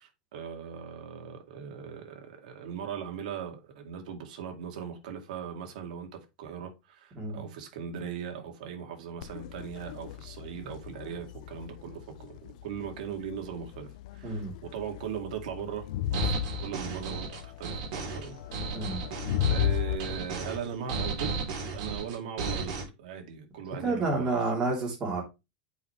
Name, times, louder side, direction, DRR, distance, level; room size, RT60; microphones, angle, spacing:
voice 1, 0.0-13.9 14.1-18.4 19.5-21.4 21.7-24.4, right 8 dB, 70° right, 2.2 m, -39 dB
Crowd, 9.2-20.0, left 12 dB, 60° left, 0.7 m, -35 dB
voice 2, 14.2-14.5 18.7-19.0 23.8-25.2, right 3 dB, 20° right, 3.1 m, -29 dB
sound 1, 16.1-22.8, right 4 dB, 55° right, 3.3 m, -34 dB
8.1 x 5.0 x 3.2 m
supercardioid pair, 170°, 5 cm